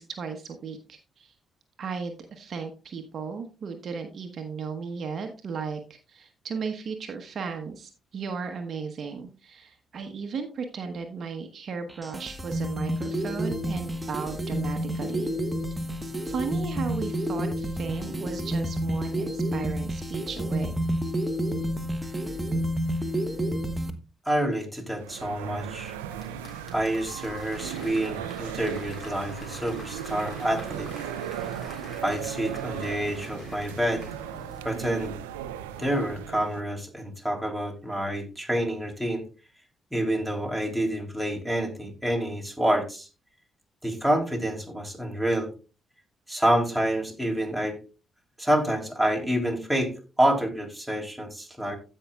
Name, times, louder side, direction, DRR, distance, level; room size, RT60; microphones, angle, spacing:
voice 1, 0.0-1.3 1.8-15.3 16.2-20.8 41.8-41.9, right 5 dB, 55° right, 6 dB, 1.1 m, -35 dB
sound 1, 11.9-23.9, equal, 15° right, 1.3 m, -29 dB
voice 2, 24.2-26.0 26.7-30.9 32.0-34.0 34.6-35.2 35.8-39.2 39.9-43.1 43.8-45.5 46.3-47.8 48.4-49.9 50.2-51.8, right 1 dB, ahead, 1 dB, 3.3 m, -27 dB
sound 2, 25.0-36.6, right 9 dB, 90° right, 0.5 m, -37 dB
Applause / Crowd, 25.9-35.4 35.7-35.8, left 2 dB, 40° left, 3.7 m, -47 dB
16.0 x 5.6 x 2.4 m, 0.32 s
hypercardioid pair, 45°, 0 cm